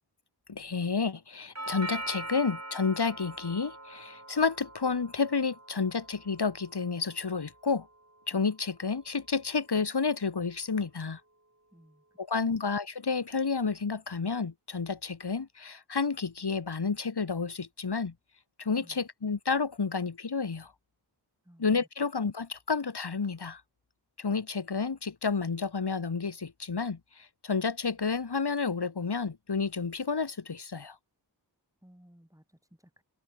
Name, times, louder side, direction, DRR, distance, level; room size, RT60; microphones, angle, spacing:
voice 1, 0.5-7.9 8.3-11.2 12.2-18.1 18.6-20.7 21.6-23.6 24.2-30.9, left 5 dB, 60° left, 1.5 m, -30 dB
Doorbell, 1.5-9.6, right 2 dB, 35° right, 7.7 m, -44 dB
voice 2, 11.7-12.0 18.8-19.0 21.4-21.7 31.8-33.0, equal, 5° right, 7.6 m, -58 dB
wide cardioid pair, 45°, 44 cm